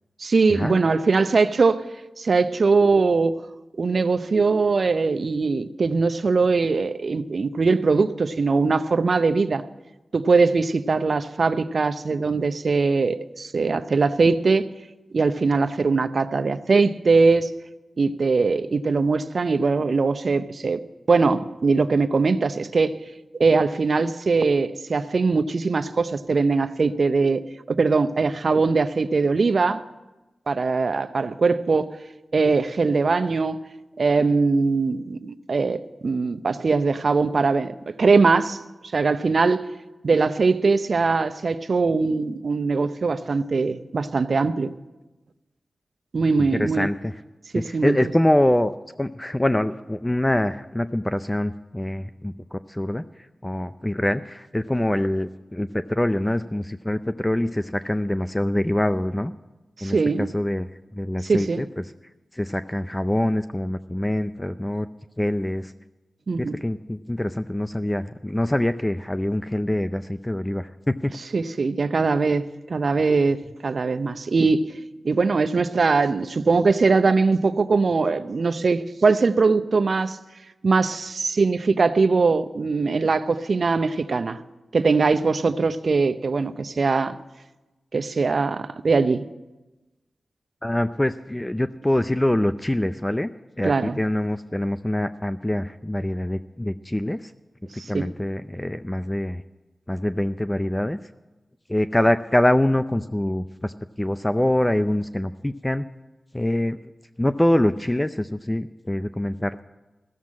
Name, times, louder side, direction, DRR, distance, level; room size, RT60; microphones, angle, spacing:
voice 1, 0.2-1.8 2.2-3.4 3.8-9.6 10.1-14.7 15.1-17.5 18.0-20.8 21.1-23.0 23.4-27.4 27.7-29.8 30.5-31.9 32.3-33.6 34.0-38.6 38.9-39.7 40.0-44.7 46.1-46.9 47.5-48.1 59.8-60.3 61.2-61.6 66.3-66.6 71.3-74.7 75.0-80.2 80.6-84.4 84.7-87.2 87.9-89.3 93.6-94.0 97.8-98.1, right 4 dB, 65° right, 0.6 m, -21 dB
voice 2, 46.5-47.1 47.5-48.7 49.0-53.0 53.4-59.3 59.8-61.7 62.3-64.9 65.2-65.7 66.4-71.1 90.6-93.3 93.6-97.3 97.7-99.4 99.9-101.0 101.7-105.9 106.3-106.8 107.2-109.6, left 1 dB, 15° left, 0.4 m, -24 dB
15.0 x 7.4 x 9.5 m
cardioid pair, 45°, 0 cm